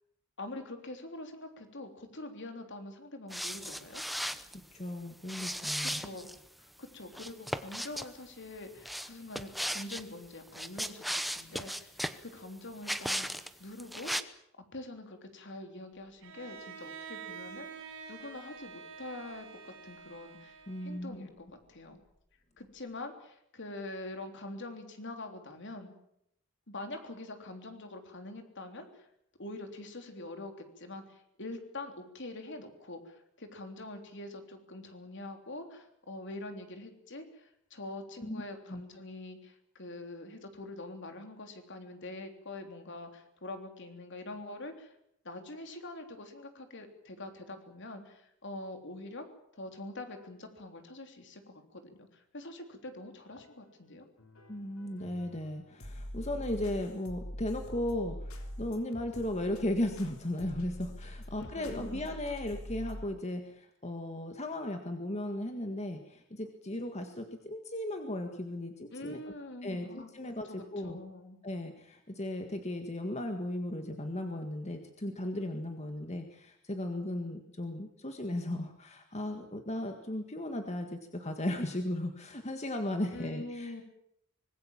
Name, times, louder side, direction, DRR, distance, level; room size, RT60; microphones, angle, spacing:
voice 1, 0.4-4.0 5.8-6.3 6.6-13.3 13.6-14.1 14.6-22.0 22.6-25.9 26.7-29.1 29.4-44.9 45.2-49.3 49.5-54.1 61.4-62.1 68.9-70.1 70.5-71.4 83.1-83.8, left 2 dB, 60° left, 6 dB, 3.5 m, -45 dB
sound 1, 3.3-4.6 5.3-6.4 7.1-8.1 8.8-10.0 10.5-12.2 12.8-13.5 13.8-14.2, equal, ahead, 0.9 m, -36 dB
voice 2, 4.7-6.0 20.7-21.3 38.2-38.4 38.7-38.8 54.5-69.2 69.6-71.0 71.4-83.8, left 1 dB, 30° left, 5 dB, 1.8 m, -36 dB
Bowed string instrument, 16.2-21.2, right 6 dB, 70° right, 4.9 m, -47 dB
sound 2, 53.3-53.8 54.2-63.0, equal, 85° left, 3.5 m, -45 dB
25.0 x 20.5 x 7.4 m, 0.75 s
head